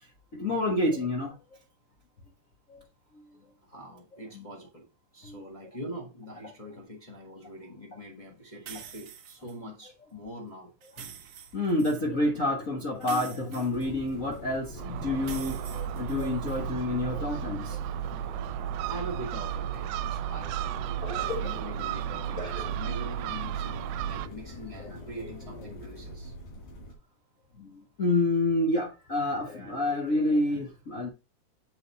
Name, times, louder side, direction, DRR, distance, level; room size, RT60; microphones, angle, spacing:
voice 1, 0.3-1.3 2.7-2.8 4.3-4.4 5.2-5.4 11.5-17.8 21.0-21.6 22.4-22.7 24.8-25.3 27.6-31.1, left 2 dB, 55° left, 0.8 m, -29 dB
voice 2, 3.6-4.9 5.1-10.7 18.3-18.6 18.8-21.0 21.4-26.3, equal, 40° left, 0.4 m, -43 dB
sound 1, 8.7-9.5 10.8-12.0 13.0-14.4 15.2-16.6, right 8 dB, 65° right, 1.5 m, -46 dB
sound 2, 13.7-26.9, left 1 dB, 80° left, 3.9 m, -44 dB
Gull seagull, 14.8-24.3, right 12 dB, 85° right, 2.1 m, -34 dB
7.6 x 4.1 x 4.2 m
omnidirectional pair, 3.6 m